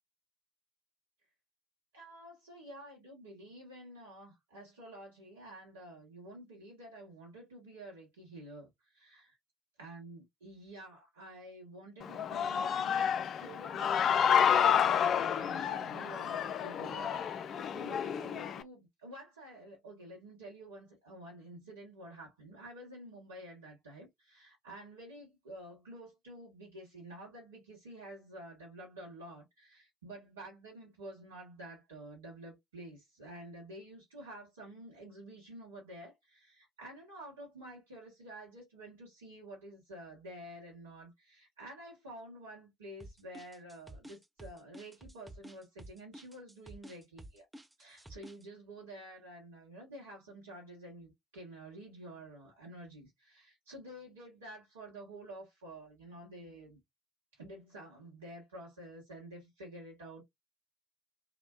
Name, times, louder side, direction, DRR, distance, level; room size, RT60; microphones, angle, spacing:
voice 1, 1.9-9.3 9.8-13.1 13.4-47.5 47.8-56.8 57.3-60.2, right 1 dB, 80° right, 0.9 m, -50 dB
Human voice / Cheering, 12.0-18.6, left 8 dB, 55° left, 0.3 m, -30 dB
sound 1, 43.0-48.4, right 1 dB, 10° right, 0.7 m, -50 dB
2.9 x 2.1 x 2.4 m
figure-of-eight pair, 45°, 0 cm